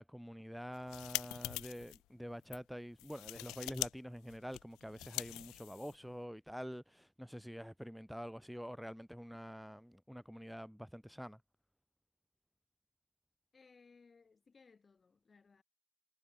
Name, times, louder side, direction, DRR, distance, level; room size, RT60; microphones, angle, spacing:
voice 1, 0.0-11.4, equal, ahead, 0.7 m, -47 dB
sound 1, 0.6-2.0 2.4-2.6 3.0-6.1, left 18 dB, 80° left, 0.6 m, -43 dB
voice 2, 13.5-15.6, left 4 dB, 35° left, 7.3 m, -64 dB
supercardioid pair, 65°, 0 cm